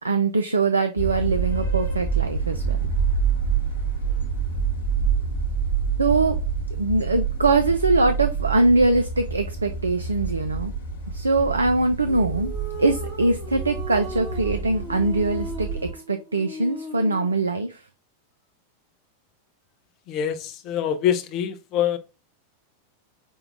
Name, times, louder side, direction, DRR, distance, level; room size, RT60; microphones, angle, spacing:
voice 1, 0.0-2.8 6.0-6.4 6.7-10.7 11.1-12.5 12.8-17.8, right 3 dB, 75° right, 0.3 m, -22 dB
sound 1, 1.0-15.9, right 5 dB, 70° left, 0.9 m, -27 dB
sound 2, 12.1-17.4, right 2 dB, 25° right, 1.1 m, -38 dB
voice 2, 20.1-22.0, left 9 dB, 40° left, 0.4 m, -25 dB
5.2 x 2.2 x 3.4 m
figure-of-eight pair, 90°, 0 cm